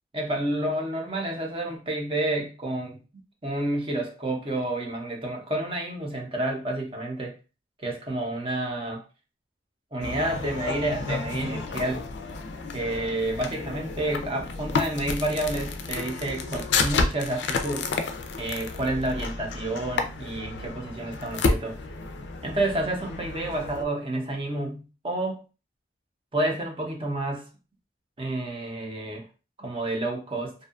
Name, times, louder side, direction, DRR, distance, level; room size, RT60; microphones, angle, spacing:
voice 1, 0.1-3.0 3.4-7.4 7.8-9.0 9.9-12.0 12.7-17.9 18.4-21.8 22.4-25.4 26.3-27.5 28.2-29.2 29.6-30.5, right 1 dB, 30° right, 1 dB, 0.6 m, -29 dB
sound 1, 10.0-23.8, left 4 dB, 75° left, 0.4 m, -31 dB
2.6 x 2.3 x 2.4 m, 0.32 s
head